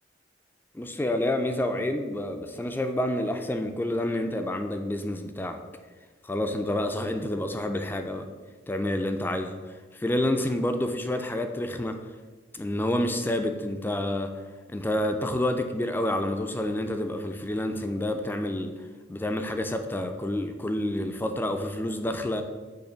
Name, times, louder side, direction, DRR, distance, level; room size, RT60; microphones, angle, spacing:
voice 1, 0.7-5.6 6.2-8.3 8.7-9.6 9.9-12.0 12.5-14.3 14.7-18.8 19.1-22.4, left 1 dB, 10° left, 6 dB, 0.3 m, -28 dB
6.5 x 3.1 x 5.7 m, 1.3 s
head